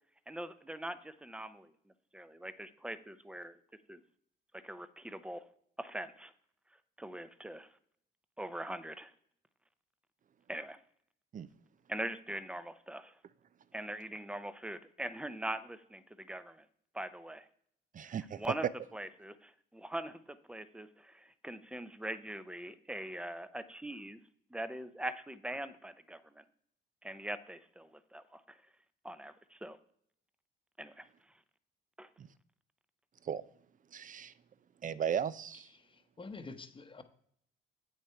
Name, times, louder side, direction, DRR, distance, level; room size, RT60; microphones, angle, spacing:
voice 1, 0.3-1.7 2.1-3.5 3.9-4.0 4.5-5.5 5.8-6.3 7.0-7.7 8.4-9.1 10.5-10.8 11.9-13.1 13.7-16.6 16.9-17.5 18.4-24.2 24.5-26.4 27.0-28.6 29.0-29.8 30.8-31.1 32.0-32.1, right 1 dB, 5° right, 13 dB, 0.7 m, -42 dB
voice 2, 17.9-18.4 32.2-32.3 33.2-33.4 33.9-34.3 34.8-35.7, right 8 dB, 40° right, 17 dB, 0.5 m, -36 dB
voice 3, 35.7-37.0, left 3 dB, 25° left, 8 dB, 1.0 m, -48 dB
8.2 x 6.4 x 4.5 m, 0.65 s
cardioid pair, 90°, 20 cm